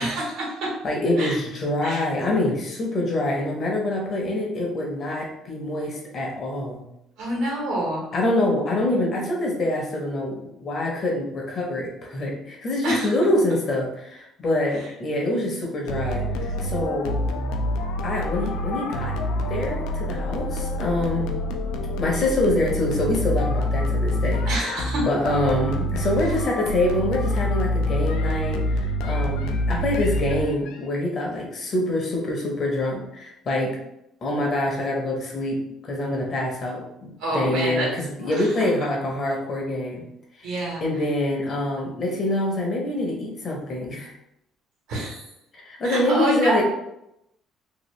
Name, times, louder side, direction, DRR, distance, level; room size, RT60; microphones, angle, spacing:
voice 1, 0.0-0.7 1.2-1.4 1.8-2.0 7.2-8.0 12.8-13.1 24.5-25.1 37.2-37.9 38.2-38.7 40.4-40.8 44.9-45.2 45.8-46.6, right 1 dB, 80° right, -4 dB, 1.2 m, -27 dB
voice 2, 0.8-6.8 8.1-17.2 18.0-19.1 19.5-21.4 22.0-33.8 34.2-40.0 40.4-40.5 40.8-44.1 45.6-46.6, left 1 dB, 35° left, -1 dB, 0.7 m, -25 dB
sound 1, 15.9-30.8, left 1 dB, 90° left, 0.3 m, -26 dB
2.7 x 2.3 x 3.1 m, 0.84 s
cardioid pair, 145°, 0 cm